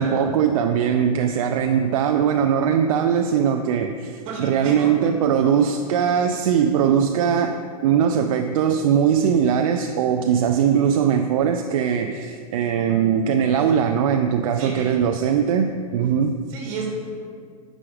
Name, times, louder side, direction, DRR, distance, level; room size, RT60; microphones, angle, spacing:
voice 1, 0.0-7.6 7.8-16.4, right 8 dB, 65° right, 6 dB, 0.5 m, -20 dB
voice 2, 4.2-4.9 14.5-15.1 16.5-16.9, right 4 dB, 40° right, -1 dB, 2.2 m, -32 dB
8.6 x 6.3 x 5.0 m, 2.2 s
supercardioid pair, 155°, 19 cm